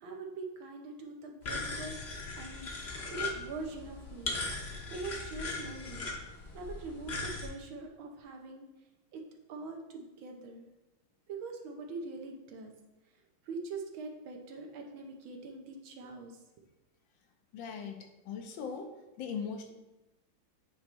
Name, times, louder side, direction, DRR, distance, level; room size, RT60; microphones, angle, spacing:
voice 1, 0.0-2.0 2.4-6.1 6.5-8.7 9.1-9.2 9.5-10.7 11.3-12.7 13.5-16.4, right 3 dB, 75° right, 2 dB, 1.7 m, -43 dB
sound 1, 1.4-7.5, left 3 dB, 45° left, 0.9 m, -39 dB
voice 2, 17.5-19.7, left 6 dB, 75° left, 5 dB, 1.4 m, -40 dB
8.6 x 3.2 x 4.4 m, 1.0 s
omnidirectional pair, 2.2 m